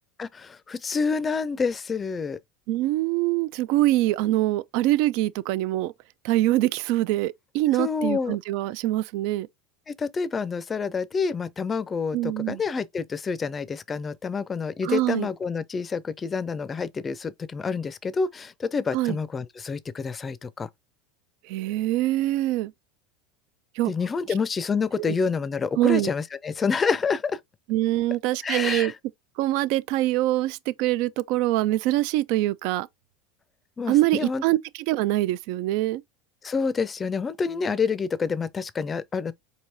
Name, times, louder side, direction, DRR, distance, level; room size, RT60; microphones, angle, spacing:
voice 1, 0.2-2.4 7.7-8.4 9.9-20.7 23.9-27.4 28.4-29.0 33.8-34.4 36.4-39.3, left 5 dB, 25° left, 0.4 m, -28 dB
voice 2, 2.7-5.9 6.2-9.5 12.1-12.6 14.8-15.3 18.9-19.2 21.5-22.7 23.8-23.9 25.0-25.1 25.8-26.1 27.7-28.9 29.4-32.9 33.9-34.6 34.9-36.0, right 16 dB, 60° right, 0.3 m, -24 dB
4.6 x 2.8 x 2.7 m
hypercardioid pair, 85°, 0 cm